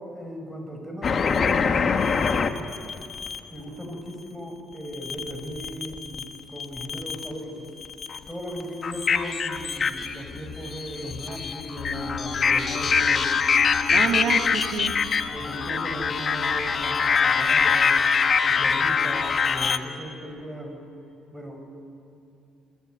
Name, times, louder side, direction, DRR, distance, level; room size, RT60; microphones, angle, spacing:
voice 1, 0.1-2.5 3.5-7.7 8.3-13.3 13.8-14.1 15.3-18.0 18.4-20.9 21.3-21.6, equal, 5° right, 2 dB, 7.0 m, -37 dB
sound 1, 1.0-3.4 4.9-6.2 6.6-7.4 7.8-19.8, left 5 dB, 40° left, 1.6 m, -24 dB
sound 2, 11.7-19.3, left 6 dB, 85° left, 4.3 m, -40 dB
voice 2, 13.9-14.9, right 7 dB, 65° right, 4 dB, 1.7 m, -27 dB
26.5 x 23.0 x 9.6 m, 2.7 s
cardioid pair, 100°, 0 cm